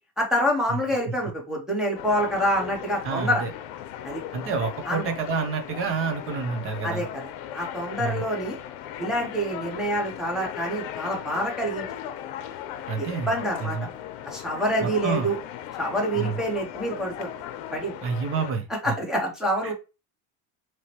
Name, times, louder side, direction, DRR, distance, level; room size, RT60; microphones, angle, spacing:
voice 1, 0.2-3.4 4.0-4.2 4.8-5.1 6.8-8.6 9.0-11.9 13.0-13.8 14.2-15.4 15.8-17.3 17.7-18.0 18.8-19.7, equal, ahead, -2 dB, 0.7 m, -27 dB
sound 1, 2.0-18.5, left 10 dB, 75° left, 0.7 m, -37 dB
voice 2, 3.0-3.5 4.3-7.1 8.0-8.2 12.9-13.9 14.8-15.3 16.2-16.4 18.0-18.9 19.6-19.7, right 5 dB, 35° right, 6 dB, 0.7 m, -29 dB
4.6 x 3.0 x 2.9 m, 0.29 s
cardioid pair, 175°, 38 cm